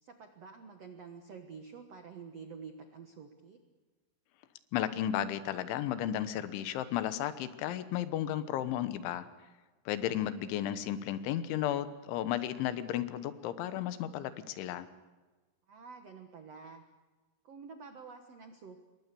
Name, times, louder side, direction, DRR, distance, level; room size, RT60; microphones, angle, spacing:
voice 1, 0.0-3.6 15.7-16.8 17.4-18.8, right 5 dB, 85° right, 6 dB, 1.4 m, -49 dB
voice 2, 4.7-9.3 9.9-14.9, left 11 dB, 85° left, 12 dB, 3.5 m, -34 dB
28.0 x 23.0 x 6.9 m, 1.3 s
omnidirectional pair, 5.3 m